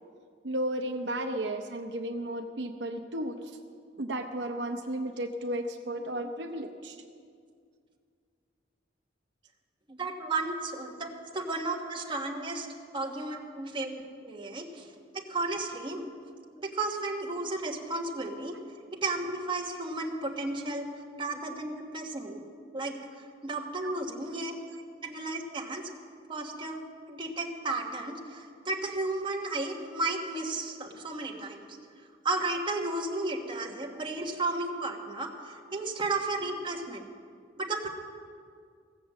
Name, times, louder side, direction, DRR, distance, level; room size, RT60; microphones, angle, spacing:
voice 1, 0.4-3.6 4.0-7.0 13.3-13.4 18.5-18.6 23.8-23.9 24.7-24.8 33.5-33.6, right 1 dB, 75° right, 5 dB, 0.7 m, -34 dB
voice 2, 9.9-12.7 12.9-14.9 15.1-16.0 16.6-18.5 18.9-20.9 21.2-22.4 22.7-24.6 25.0-25.8 26.3-31.6 32.2-37.1 37.6-37.9, right 2 dB, 30° right, 0 dB, 1.4 m, -33 dB
17.0 x 7.0 x 7.4 m, 2.2 s
head